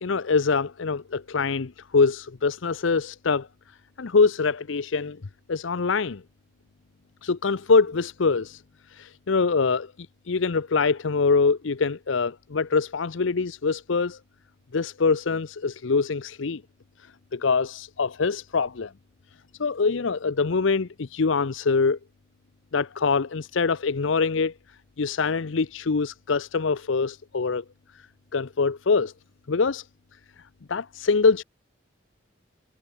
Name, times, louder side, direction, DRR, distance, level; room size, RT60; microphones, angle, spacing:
voice 1, 0.0-3.5 4.0-5.2 5.5-6.2 7.2-8.6 8.9-9.9 10.3-14.2 14.7-16.6 17.3-18.9 19.6-22.0 22.7-24.5 25.0-27.6 28.3-29.1 29.5-29.9 30.7-31.4, left 4 dB, 75° left, 0.7 m, -24 dB
head